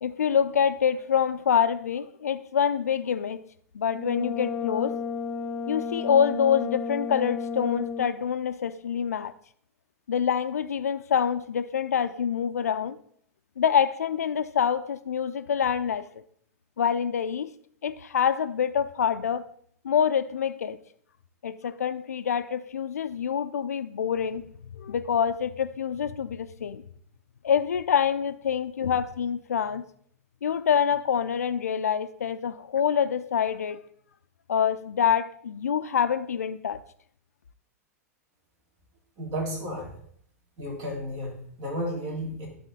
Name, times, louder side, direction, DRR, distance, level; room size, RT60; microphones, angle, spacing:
voice 1, 0.0-3.4 3.7-5.0 5.7-9.3 10.1-13.0 13.6-16.1 16.8-17.5 17.8-19.4 19.8-20.8 21.4-24.5 24.7-26.8 27.4-29.8 30.4-33.8 34.5-36.8, left 8 dB, 80° left, 11 dB, 0.4 m, -26 dB
Brass instrument, 3.9-8.3, left 6 dB, 20° left, 0.7 m, -32 dB
voice 2, 39.2-39.9 40.6-42.5, equal, 50° right, 0 dB, 3.2 m, -33 dB
11.5 x 4.2 x 4.1 m, 0.62 s
hypercardioid pair, 100°, 8 cm